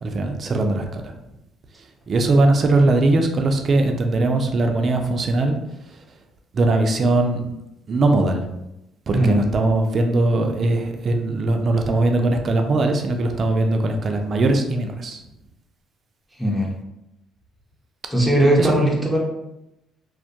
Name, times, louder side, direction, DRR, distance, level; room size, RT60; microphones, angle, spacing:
voice 1, 0.0-1.1 2.1-5.5 6.5-7.4 7.9-8.4 9.1-15.2 18.6-18.7, right 2 dB, 50° right, 4 dB, 0.3 m, -20 dB
voice 2, 16.4-16.7 18.1-19.2, right 1 dB, ahead, -4 dB, 0.6 m, -18 dB
2.2 x 2.2 x 2.6 m, 0.88 s
supercardioid pair, 70°, 0 cm